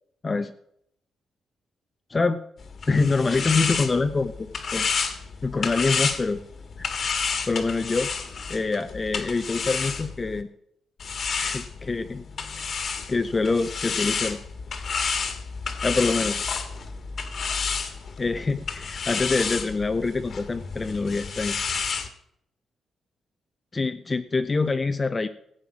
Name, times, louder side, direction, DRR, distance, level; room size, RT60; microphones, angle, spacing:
voice 1, 2.1-2.4 2.9-4.9 5.4-6.4 6.8-6.9 7.5-8.1 8.5-10.5 11.4-12.2 13.1-14.4 15.8-16.4 18.2-21.6 23.7-25.3, left 3 dB, 25° left, 9 dB, 0.6 m, -25 dB
sound 1, 2.6-10.4 11.0-22.1, left 5 dB, 45° left, 1.6 m, -30 dB
15.5 x 8.9 x 6.1 m, 0.73 s
wide cardioid pair, 150°, 0 cm